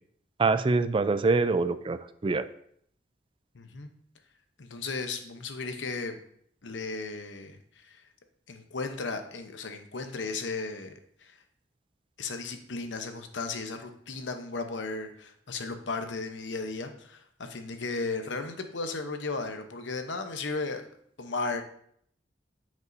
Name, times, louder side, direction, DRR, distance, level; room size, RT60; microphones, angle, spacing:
voice 1, 0.4-2.5, right 3 dB, 30° right, 13 dB, 0.3 m, -25 dB
voice 2, 3.5-3.9 4.6-6.2 6.6-8.0 8.5-10.9 11.2-11.4 12.2-20.9 21.2-21.6, left 3 dB, 85° left, 7 dB, 0.8 m, -35 dB
9.3 x 5.3 x 2.6 m, 0.67 s
head